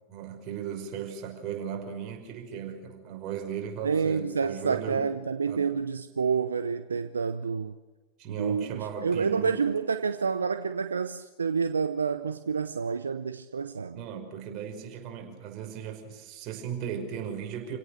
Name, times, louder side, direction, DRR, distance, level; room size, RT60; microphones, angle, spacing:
voice 1, 0.1-5.1 5.5-5.7 8.2-9.6 13.9-17.8, right 8 dB, 45° right, 5.6 m, -37 dB
voice 2, 3.8-7.7 8.3-14.0, right 5 dB, 85° right, 0.7 m, -28 dB
28.5 x 17.5 x 6.6 m
figure-of-eight pair, 85°, 0 cm